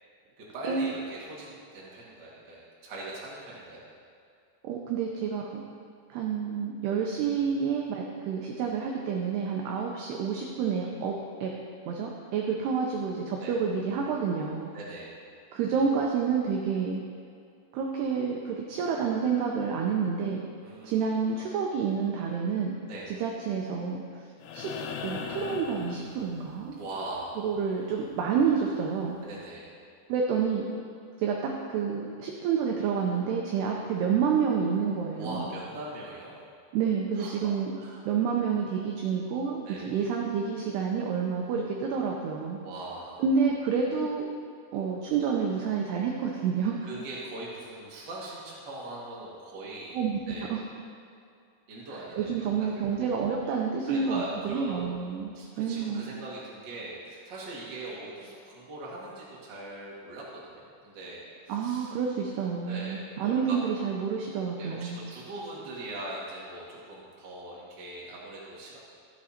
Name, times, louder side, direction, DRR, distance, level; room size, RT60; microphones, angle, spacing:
voice 1, 0.4-3.8 13.4-13.5 14.7-15.1 20.6-21.4 22.9-23.1 26.8-27.4 29.2-29.7 35.1-36.4 37.1-38.1 39.6-39.9 42.6-43.2 46.8-50.0 50.3-50.5 51.7-53.0 53.9-54.9 55.3-61.9 62.6-63.6 64.6-68.8, right 1 dB, 40° right, -6 dB, 1.6 m, -41 dB
voice 2, 4.6-5.6 6.1-11.5 11.9-14.7 15.5-17.0 17.7-20.4 20.8-22.7 23.2-24.0 24.5-24.7 25.0-26.8 27.4-29.2 30.1-30.6 31.2-35.5 36.7-37.7 38.1-42.6 43.2-44.3 44.7-46.7 49.9-50.6 51.9-56.0 61.5-65.0, right 6 dB, 80° right, 0 dB, 2.4 m, -29 dB
sound 1, 24.4-26.7 28.6-28.7, left 6 dB, 80° left, 2.9 m, -38 dB
13.5 x 8.3 x 4.4 m, 2.4 s
omnidirectional pair, 5.6 m